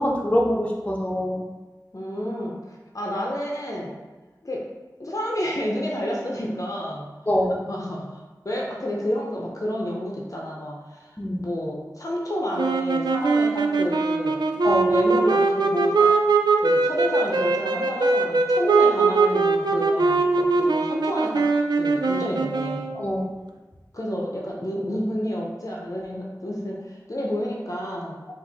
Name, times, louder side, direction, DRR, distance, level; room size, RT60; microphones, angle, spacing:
voice 1, 0.0-1.4 7.3-7.6 11.2-11.4 14.6-14.9 22.9-23.3, equal, 20° left, -3 dB, 0.8 m, -24 dB
voice 2, 1.9-2.6 2.9-4.0 4.4-4.6 5.0-7.1 7.7-8.1 8.4-11.1 11.4-14.4 14.9-16.1 16.6-21.5 21.7-22.9 23.9-28.2, equal, 50° left, -2 dB, 0.7 m, -29 dB
sound 1, 12.6-23.1, right 3 dB, 85° right, 0.3 m, -21 dB
4.5 x 2.6 x 4.0 m, 1.2 s
wide cardioid pair, 50°, 7 cm